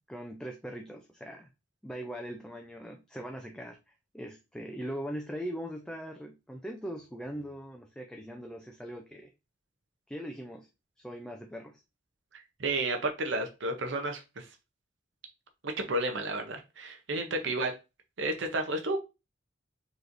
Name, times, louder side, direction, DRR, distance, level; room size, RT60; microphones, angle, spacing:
voice 1, 0.1-1.5 1.8-9.3 10.1-10.7 11.0-11.8 17.4-17.5, equal, 5° left, 2 dB, 0.4 m, -41 dB
voice 2, 12.6-14.5 15.6-17.7 18.2-19.0, right 2 dB, 75° right, 5 dB, 0.7 m, -31 dB
4.9 x 3.1 x 2.5 m, 0.27 s
head